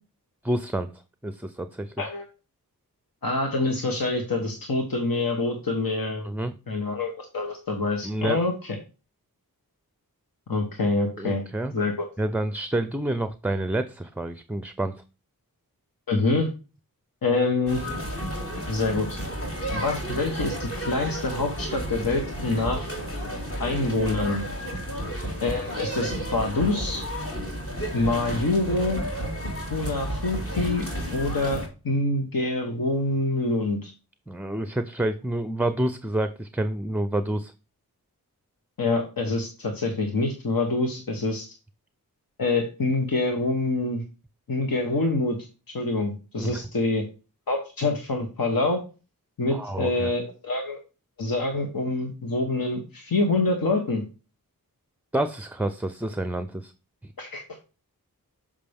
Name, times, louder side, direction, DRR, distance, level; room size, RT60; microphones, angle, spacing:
voice 1, 0.4-0.9 1.2-1.9 6.2-6.5 8.0-8.4 11.2-11.7 12.2-14.9 34.3-37.5 46.4-46.6 49.5-50.1 55.1-56.7, right 1 dB, 5° right, 11 dB, 0.5 m, -28 dB
voice 2, 3.2-6.3 6.7-8.8 10.5-11.4 11.7-12.1 16.1-16.5 17.2-17.8 18.7-19.1 19.7-22.9 23.6-24.4 25.4-27.0 27.9-29.0 29.7-30.9 31.1-33.9 38.8-41.5 42.4-44.0 44.5-45.5 45.7-47.0 47.5-48.8 49.4-50.8 51.2-54.0 57.2-57.4, left 2 dB, 70° left, 2 dB, 1.3 m, -26 dB
sound 1, 17.7-31.7, right 1 dB, 40° left, 2.4 m, -32 dB
6.6 x 5.3 x 3.5 m, 0.32 s
cardioid pair, 40°, 36 cm